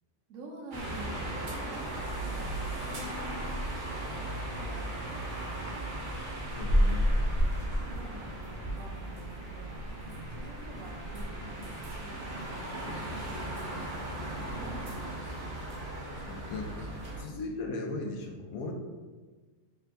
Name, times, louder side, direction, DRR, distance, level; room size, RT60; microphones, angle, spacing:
voice 1, 0.3-3.7 4.0-4.2 4.6-6.1 7.1-9.8 10.3-11.6 12.0-13.9 14.5-15.6 16.6-17.4, right 2 dB, 75° right, -1 dB, 1.1 m, -48 dB
sound 1, 0.7-17.2, equal, 45° right, 0.8 m, -34 dB
voice 2, 6.5-7.2 10.1-10.3 12.8-12.9 14.4-14.6 16.3-16.8 17.2-18.7, left 2 dB, 80° left, 3 dB, 1.1 m, -38 dB
4.5 x 3.4 x 2.6 m, 1.3 s
omnidirectional pair, 1.4 m